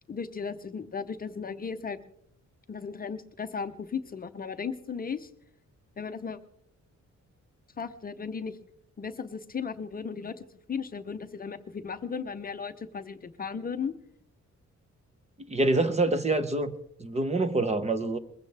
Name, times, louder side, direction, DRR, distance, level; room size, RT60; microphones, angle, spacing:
voice 1, 0.1-2.0 2.7-5.3 6.0-6.4 7.8-8.6 9.0-13.9, left 6 dB, 30° left, 9 dB, 0.7 m, -36 dB
voice 2, 15.5-18.2, right 2 dB, 25° right, 10 dB, 0.8 m, -26 dB
21.5 x 16.0 x 3.4 m, 0.67 s
wide cardioid pair, 180°, 29 cm